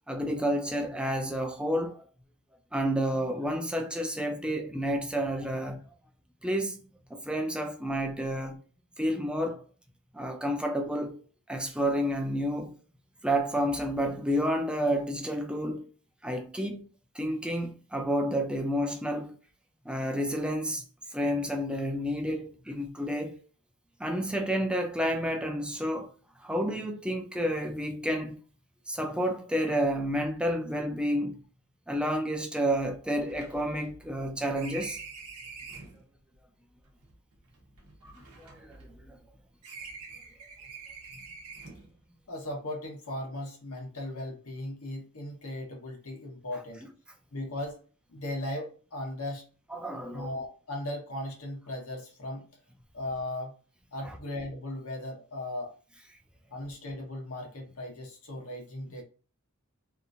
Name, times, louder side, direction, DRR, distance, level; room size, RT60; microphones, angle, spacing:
voice 1, 0.1-2.0 2.7-5.8 6.4-6.8 7.1-8.6 9.0-9.6 10.1-11.2 11.5-12.8 13.2-15.8 16.2-16.8 17.2-19.3 19.9-20.8 21.1-23.3 24.0-26.1 26.4-28.4 28.9-31.4 31.9-35.0 38.0-39.2 49.7-50.3 54.1-54.2, equal, 5° right, 0.4 m, -30 dB
sound 1, 31.9-32.0 32.2-32.3 32.7-36.0 36.9-39.3 39.6-41.9, right 4 dB, 85° right, 0.7 m, -46 dB
voice 2, 42.3-46.8 47.3-47.8 48.1-49.4 50.1-52.5 52.9-53.5 53.9-55.7 56.5-59.0, left 1 dB, 80° left, 1.1 m, -37 dB
2.9 x 2.5 x 2.5 m
head